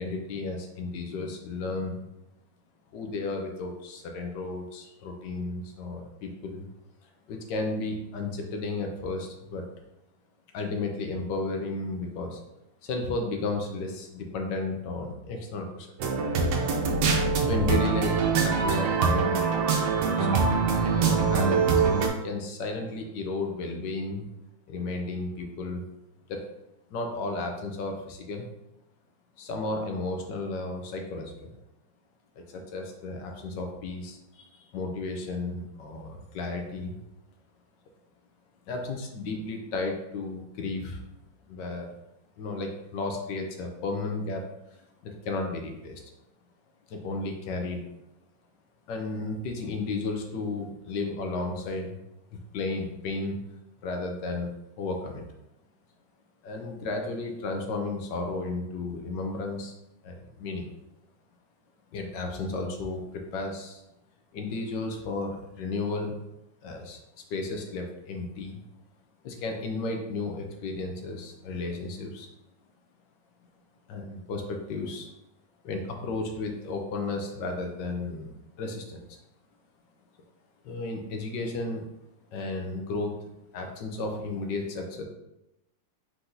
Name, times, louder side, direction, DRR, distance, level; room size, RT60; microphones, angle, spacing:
voice 1, 0.0-2.0 2.9-6.6 7.3-9.6 10.5-12.4 12.8-15.9 17.4-19.5 20.0-20.3 20.9-21.9 22.2-24.3 24.7-25.8 26.3-26.5 26.9-28.5 29.4-31.5 32.4-37.0 38.7-41.0 41.5-41.9 42.4-44.4 44.7-46.0 46.9-47.8 48.9-52.0 52.3-53.4 53.8-54.5 54.8-55.3 56.4-59.7 60.0-60.7 61.9-63.8 64.3-66.1 66.6-67.0 67.3-68.6 69.2-72.3 73.9-75.1 75.6-79.2 80.6-81.8 82.3-83.2 83.5-85.0, left 3 dB, 75° left, 3 dB, 1.3 m, -33 dB
sound 1, 16.0-22.1, right 4 dB, 90° right, 1.4 m, -24 dB
4.5 x 3.8 x 2.6 m, 0.89 s
omnidirectional pair, 2.0 m